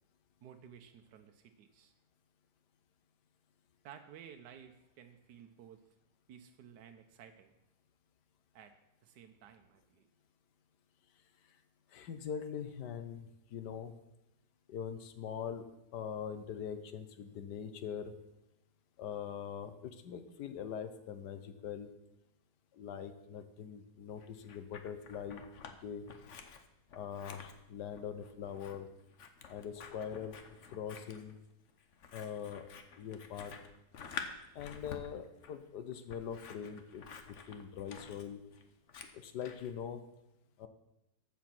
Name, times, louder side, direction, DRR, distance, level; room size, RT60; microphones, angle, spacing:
voice 1, 0.4-1.9 3.8-5.8 6.3-7.5 8.5-8.7 9.0-10.1, right 8 dB, 75° right, 5 dB, 1.3 m, -55 dB
voice 2, 11.9-13.9 14.7-15.6 15.9-18.1 19.0-21.9 22.7-25.4 25.8-26.1 26.9-28.9 29.5-30.4 30.7-31.4 32.1-32.7 33.0-33.5 34.5-37.0 37.5-38.4 39.1-40.0 40.6-40.7, left 8 dB, 75° left, 10 dB, 1.5 m, -42 dB
Scissors, 24.2-25.7 26.1-39.7, left 6 dB, 50° left, 1.1 m, -50 dB
14.5 x 5.2 x 6.0 m, 0.88 s
omnidirectional pair, 1.8 m